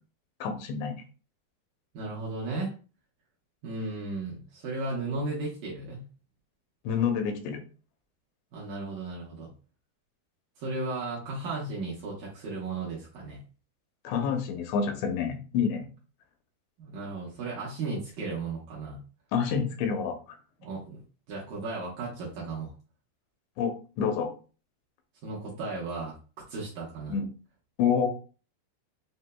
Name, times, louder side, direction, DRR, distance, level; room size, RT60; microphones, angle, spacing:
voice 1, 0.4-0.9 6.8-7.6 14.0-15.9 19.3-20.2 23.6-24.3 27.1-27.3 27.8-28.1, left 6 dB, 85° left, 5 dB, 3.0 m, -28 dB
voice 2, 1.9-2.7 3.6-6.0 8.5-9.5 10.6-13.4 16.8-19.0 20.6-21.0 21.3-22.7 25.2-26.2 26.5-27.1, right 3 dB, 70° right, -4 dB, 2.2 m, -35 dB
7.7 x 2.6 x 2.2 m, 0.36 s
omnidirectional pair, 4.9 m